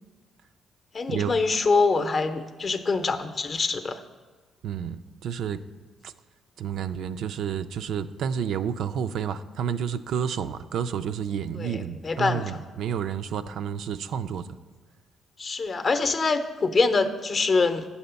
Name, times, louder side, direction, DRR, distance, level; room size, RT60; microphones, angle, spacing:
voice 1, 0.9-4.0 11.6-12.6 15.4-17.9, left 4 dB, 40° left, 9 dB, 0.6 m, -24 dB
voice 2, 4.6-5.6 6.0-6.1 6.6-14.6, right 8 dB, 75° right, 10 dB, 0.3 m, -30 dB
8.5 x 4.1 x 6.8 m, 1.4 s
cardioid pair, 90°, 0 cm